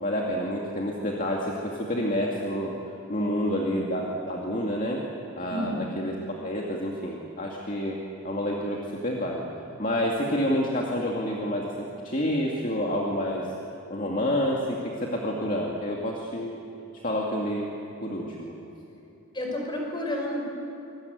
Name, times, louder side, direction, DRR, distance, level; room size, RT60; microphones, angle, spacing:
voice 1, 0.0-2.7 3.1-5.0 5.4-6.2 6.4-9.4 9.8-13.5 13.9-16.6 17.0-17.7 18.0-18.6, equal, 35° left, -1 dB, 2.3 m, -28 dB
voice 2, 5.5-5.9 19.3-20.4, left 1 dB, 20° left, 0 dB, 5.4 m, -30 dB
26.0 x 22.0 x 9.5 m, 2.8 s
head